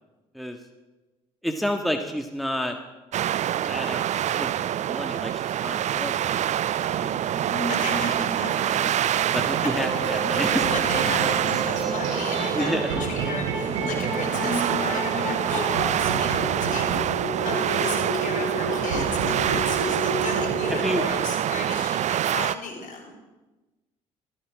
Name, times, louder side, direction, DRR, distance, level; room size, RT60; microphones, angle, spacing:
voice 1, 1.4-2.8 3.6-7.2 8.1-8.2 9.3-10.7 12.5-12.9 20.7-21.0, equal, ahead, 3 dB, 1.5 m, -30 dB
sound 1, 3.1-22.6, right 11 dB, 50° right, 0.4 m, -26 dB
sound 2, 5.7-6.4 6.7-9.3 9.7-9.8 10.2-13.3 13.7-15.4, left 1 dB, 35° left, 4.4 m, -37 dB
voice 2, 7.7-8.9 9.3-9.4 10.5-23.1, left 4 dB, 55° left, 2 dB, 4.2 m, -36 dB
sound 3, 9.5-21.1, right 1 dB, 85° right, 4.6 m, -30 dB
15.0 x 13.0 x 4.9 m, 1.1 s
hypercardioid pair, 55°, 16 cm